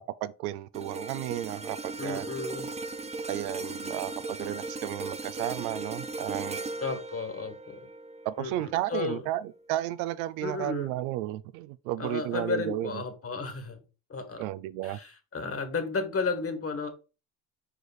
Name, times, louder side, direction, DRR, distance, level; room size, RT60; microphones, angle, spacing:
voice 1, 0.0-2.2 3.3-6.7 8.2-12.9 14.4-15.0, right 14 dB, 90° right, 0.6 m, -33 dB
sound 1, 0.7-9.1 9.5-9.7, right 3 dB, 15° right, 0.7 m, -38 dB
voice 2, 2.0-2.7 6.8-7.8 8.4-9.2 10.4-10.9 12.0-13.8 14.1-14.4 14.8-16.9, left 4 dB, 30° left, 1.7 m, -33 dB
5.0 x 4.7 x 4.1 m
supercardioid pair, 70°, 43 cm